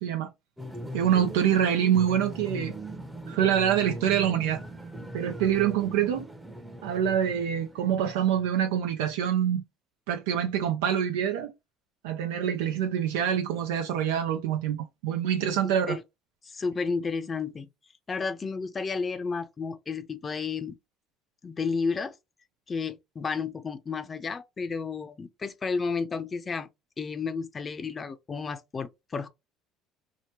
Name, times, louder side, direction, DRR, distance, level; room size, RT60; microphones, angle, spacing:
sound 1, 0.6-8.6, right 1 dB, 10° right, 0.7 m, -40 dB
voice 1, 0.9-2.7 3.3-4.6 5.1-6.3 6.8-9.6 10.1-11.5 12.0-16.0, right 9 dB, 85° right, 0.4 m, -25 dB
voice 2, 15.6-16.0 16.5-17.7 18.1-20.8 21.4-22.1 22.7-26.7 27.0-29.3, left 5 dB, 30° left, 0.5 m, -32 dB
3.0 x 2.1 x 2.9 m
supercardioid pair, 85°, 0 cm